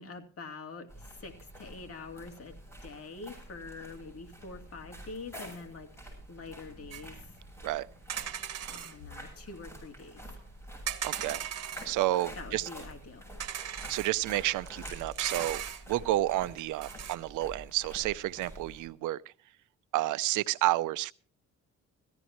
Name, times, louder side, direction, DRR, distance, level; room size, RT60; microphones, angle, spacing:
voice 1, 0.0-5.9 6.3-7.3 8.7-10.2 12.4-13.3, left 4 dB, 50° left, 4 dB, 2.7 m, -45 dB
sound 1, 0.9-18.9, right 1 dB, 10° left, 7.6 m, -48 dB
sound 2, 6.9-7.0 8.1-8.9 10.9-11.9 12.5-12.6 13.4-14.1 14.7-15.8 16.6-17.2, right 10 dB, 55° right, 1.5 m, -37 dB
voice 2, 11.0-11.4 11.8-12.7 13.9-15.6 15.9-19.2 19.9-21.1, right 16 dB, 90° right, 17 dB, 0.6 m, -30 dB
17.5 x 14.5 x 3.0 m, 0.40 s
cardioid pair, 90°, 30 cm